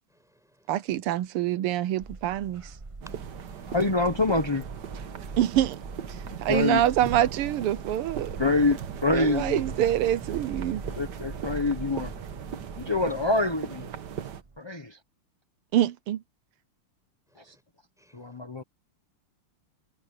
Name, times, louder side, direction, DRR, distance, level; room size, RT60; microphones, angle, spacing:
voice 1, 0.1-0.7 3.1-3.8 17.3-17.6 18.0-18.4, equal, ahead, 6.7 m, -57 dB
voice 2, 0.7-2.7 5.4-5.8 6.1-8.4 9.1-10.8 15.7-16.2, right 12 dB, 85° right, 1.7 m, -26 dB
sound 1, 2.0-14.6, right 3 dB, 35° right, 0.5 m, -42 dB
sound 2, 3.0-14.4, right 9 dB, 55° right, 1.6 m, -39 dB
voice 3, 3.7-4.6 6.5-6.8 8.4-9.6 10.9-12.1 12.8-13.9 14.6-15.0 18.1-18.6, left 3 dB, 20° left, 0.7 m, -26 dB
omnidirectional pair, 2.4 m